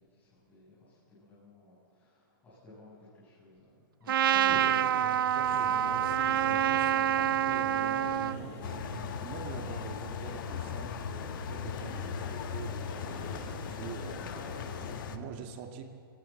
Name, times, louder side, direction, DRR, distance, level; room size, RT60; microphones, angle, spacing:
voice 1, 0.2-5.0 15.3-15.4, left 2 dB, 10° left, -10 dB, 7.8 m, -51 dB
Trumpet, 4.1-8.4, right 10 dB, 65° right, 0.7 m, -27 dB
voice 2, 4.2-15.8, right 6 dB, 30° right, 4 dB, 2.3 m, -45 dB
sound 1, 5.4-15.0, left 4 dB, 35° left, 3.6 m, -43 dB
sound 2, 8.6-15.2, left 7 dB, 60° left, 1.5 m, -39 dB
26.0 x 16.0 x 7.4 m, 2.4 s
hypercardioid pair, 165°, 12 cm